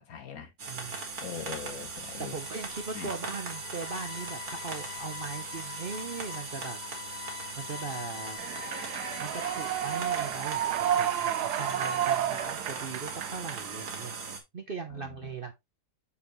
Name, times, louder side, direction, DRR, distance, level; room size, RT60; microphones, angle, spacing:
voice 1, 0.0-0.5 1.2-2.3 2.9-3.1 14.9-15.1, left 6 dB, 65° left, 1.6 m, -41 dB
voice 2, 0.6-1.1 2.3-6.8 7.5-8.4 9.2-14.2 14.5-15.5, right 4 dB, 45° right, 0.8 m, -39 dB
sound 1, 0.6-14.4, right 4 dB, 65° right, 2.2 m, -40 dB
sound 2, 1.8-12.5, left 14 dB, 80° left, 1.1 m, -46 dB
Human voice / Clapping / Cheering, 8.4-14.4, right 10 dB, 80° right, 1.2 m, -31 dB
6.9 x 5.1 x 3.1 m
omnidirectional pair, 1.7 m